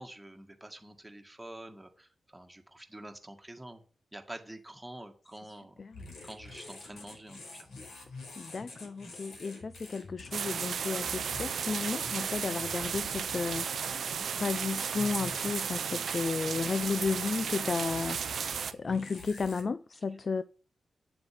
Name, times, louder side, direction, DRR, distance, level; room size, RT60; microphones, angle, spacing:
voice 1, 0.0-3.8 4.1-5.8 6.2-7.7, right 1 dB, 10° right, 1.9 m, -47 dB
voice 2, 5.5-6.2 8.4-18.2 18.7-20.4, left 4 dB, 40° left, 0.5 m, -33 dB
sound 1, 5.9-19.6, left 3 dB, 90° left, 4.9 m, -48 dB
sound 2, 10.3-18.7, right 7 dB, 70° right, 0.4 m, -34 dB
8.9 x 7.8 x 7.6 m
wide cardioid pair, 140°, 0 cm